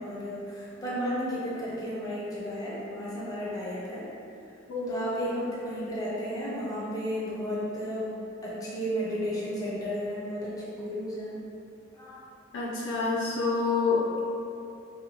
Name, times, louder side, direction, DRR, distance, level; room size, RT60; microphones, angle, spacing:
voice 1, 0.0-4.1 4.9-8.1 8.4-11.4 12.0-12.2, equal, 20° left, -8 dB, 0.5 m, -33 dB
voice 2, 12.5-14.2, left 4 dB, 65° left, -4 dB, 0.4 m, -27 dB
2.7 x 2.2 x 2.9 m, 2.7 s
head